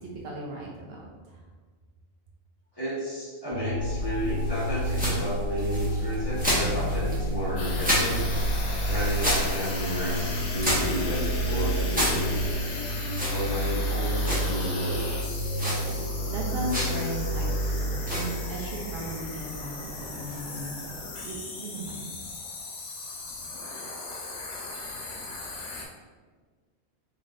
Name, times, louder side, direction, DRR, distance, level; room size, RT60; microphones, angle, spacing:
voice 1, 0.0-1.4 15.9-22.1, right 1 dB, 65° right, -2 dB, 0.8 m, -37 dB
voice 2, 2.7-8.2 8.8-12.6 13.3-15.0, equal, 20° left, -9 dB, 1.1 m, -32 dB
sound 1, 3.5-19.9, equal, 85° right, 1.1 m, -30 dB
sound 2, 3.8-21.1, equal, 10° right, 1.0 m, -32 dB
sound 3, 7.6-25.9, left 3 dB, 85° left, 1.0 m, -37 dB
3.9 x 3.3 x 2.5 m, 1.5 s
omnidirectional pair, 1.2 m